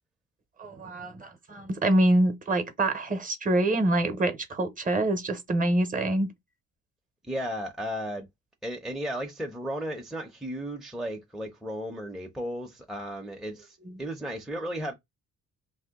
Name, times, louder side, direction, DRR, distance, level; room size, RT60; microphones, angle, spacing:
voice 1, 0.6-6.3, right 1 dB, 25° right, 0.8 m, -25 dB
voice 2, 7.2-8.3 8.6-14.9, equal, ahead, 0.6 m, -34 dB
2.7 x 2.1 x 3.5 m
cardioid pair, 90°, 30 cm